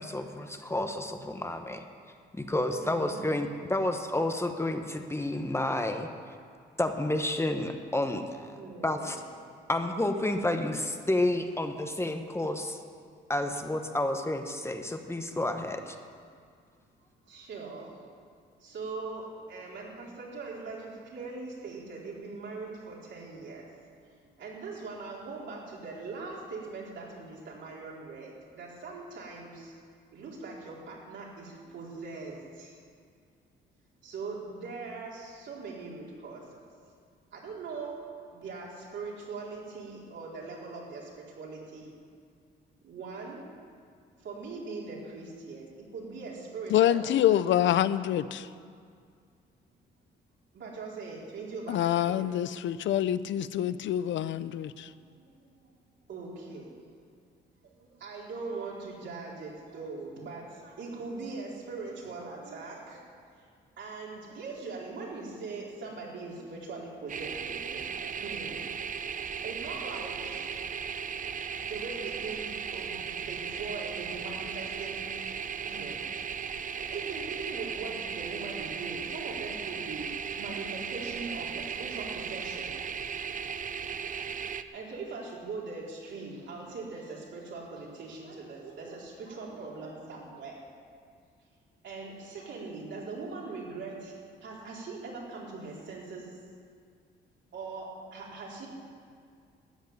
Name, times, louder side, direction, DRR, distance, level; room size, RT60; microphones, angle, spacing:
voice 1, 0.0-1.8 2.3-6.1 6.8-8.5 8.8-9.2 9.7-12.8 13.3-15.9, left 1 dB, 15° left, 1.1 m, -30 dB
voice 2, 2.7-3.3 8.6-9.7 17.3-18.1 18.6-23.7 24.1-29.7 30.1-32.8 34.0-36.6 37.3-37.9 38.3-41.9 42.8-43.5 44.2-47.4 50.5-52.2 54.9-55.7 56.1-56.8 57.6-63.0 63.8-68.7 69.0-70.6 71.2-71.3 71.6-75.3 75.6-76.1 76.8-82.7 83.3-83.4 84.7-90.7 91.8-94.1 94.4-96.3 97.5-98.7, right 4 dB, 70° right, 4.3 m, -41 dB
voice 3, 46.7-48.5 51.7-54.9, left 11 dB, 70° left, 0.6 m, -26 dB
sound 1, 67.1-84.6, right 7 dB, 40° right, 0.7 m, -36 dB
13.5 x 8.3 x 9.3 m
cardioid pair, 90°, 20 cm